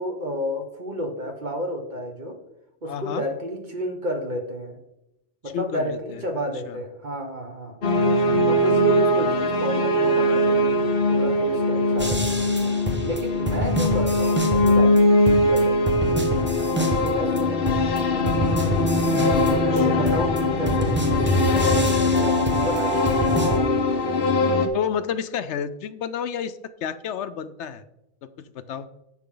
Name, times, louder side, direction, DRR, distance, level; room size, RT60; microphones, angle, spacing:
voice 1, 0.0-2.4 2.8-4.8 5.4-7.8 8.4-10.8 11.1-17.8 19.7-23.9, equal, 40° right, 3 dB, 1.5 m, -31 dB
voice 2, 2.9-3.2 5.5-6.2 6.7-6.8 7.9-8.5 19.3-19.4 19.7-20.1 24.7-27.8 28.5-28.9, left 8 dB, 75° left, 12 dB, 0.9 m, -31 dB
sound 1, 7.8-24.7, left 1 dB, 55° left, 1.1 m, -21 dB
sound 2, 12.0-15.0 15.3-17.4 17.7-23.6, right 1 dB, 10° right, 1.0 m, -27 dB
10.5 x 6.7 x 3.8 m, 0.86 s
omnidirectional pair, 1.2 m